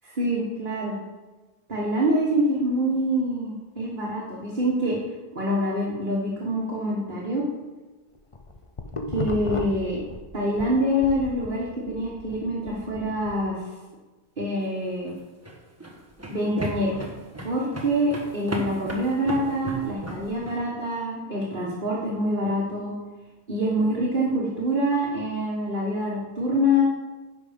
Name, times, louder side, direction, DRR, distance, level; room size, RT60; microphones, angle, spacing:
voice 1, 0.0-1.0 1.7-4.9 5.3-7.4 9.1-10.0 10.3-13.7 14.4-15.1 16.3-17.0 17.4-22.9 23.5-26.8, equal, 50° right, -5 dB, 1.8 m, -25 dB
sound 1, 8.2-10.7 11.0-13.4, left 3 dB, 35° left, 0.8 m, -34 dB
sound 2, 14.9-20.6, right 1 dB, 15° right, 1.4 m, -35 dB
10.5 x 6.1 x 5.2 m, 1.2 s
omnidirectional pair, 1.1 m